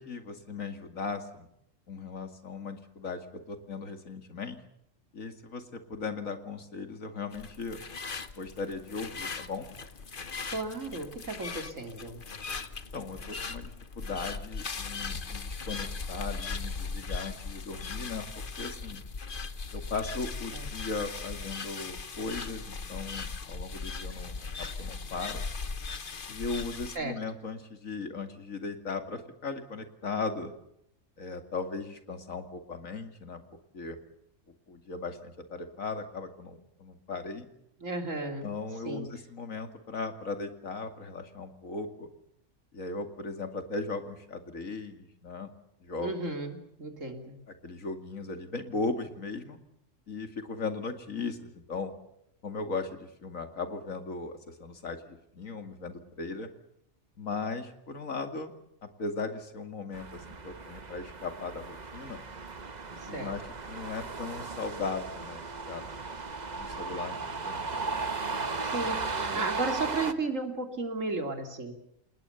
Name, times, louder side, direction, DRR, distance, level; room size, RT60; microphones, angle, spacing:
voice 1, 0.0-1.5 1.9-4.6 5.1-7.8 8.4-9.7 12.9-19.0 19.7-25.4 26.3-30.5 31.2-33.4 33.7-34.0 34.7-37.5 38.4-42.1 42.7-45.5 45.8-46.1 47.6-49.6 50.1-51.9 52.4-56.5 57.2-58.5 58.8-62.2 63.1-63.4 63.7-65.8 66.6-68.0 69.2-69.5, left 4 dB, 90° left, 7 dB, 2.8 m, -37 dB
sound 1, 7.3-27.0, left 4 dB, 45° left, 1.3 m, -39 dB
voice 2, 10.5-12.2 20.5-20.7 27.0-27.1 37.8-38.5 38.9-39.0 46.0-47.3 63.0-63.3 68.6-71.7, right 3 dB, 75° right, 5 dB, 3.6 m, -34 dB
sound 2, 59.9-70.1, right 4 dB, 35° right, 1.3 m, -36 dB
28.5 x 19.0 x 7.0 m, 0.77 s
omnidirectional pair, 1.3 m